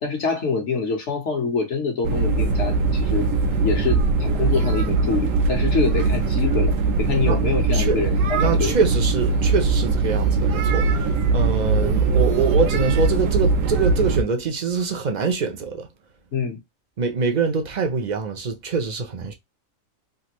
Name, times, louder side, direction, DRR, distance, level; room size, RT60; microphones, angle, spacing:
voice 1, 0.0-3.3 3.6-8.8 16.3-16.6, left 5 dB, 60° left, 1.3 m, -25 dB
sound 1, 2.0-14.2, right 3 dB, 70° right, 1.0 m, -21 dB
voice 2, 7.7-8.0 8.4-15.9 17.0-19.3, right 5 dB, 45° right, 0.6 m, -24 dB
3.4 x 2.5 x 3.0 m
omnidirectional pair, 1.4 m